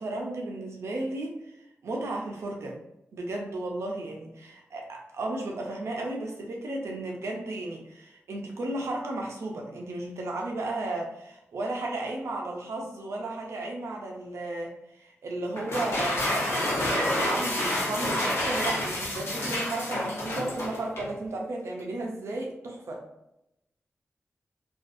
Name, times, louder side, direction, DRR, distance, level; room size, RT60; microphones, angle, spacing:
voice 1, 0.0-1.4 1.8-2.8 3.1-16.5 16.9-23.0, right 2 dB, 85° right, 0 dB, 0.5 m, -34 dB
sound 1, 15.5-21.1, left 1 dB, 65° left, 0.9 m, -29 dB
2.4 x 2.4 x 2.5 m, 0.85 s
cardioid pair, 40°, 5 cm